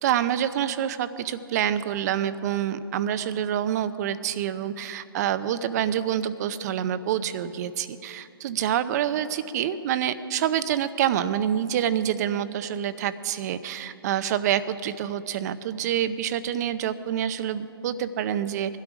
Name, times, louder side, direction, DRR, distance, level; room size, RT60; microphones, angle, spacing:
voice 1, 0.0-18.8, right 10 dB, 45° right, 13 dB, 0.7 m, -27 dB
20.5 x 12.5 x 5.0 m, 2.9 s
hypercardioid pair, 135°, 13 cm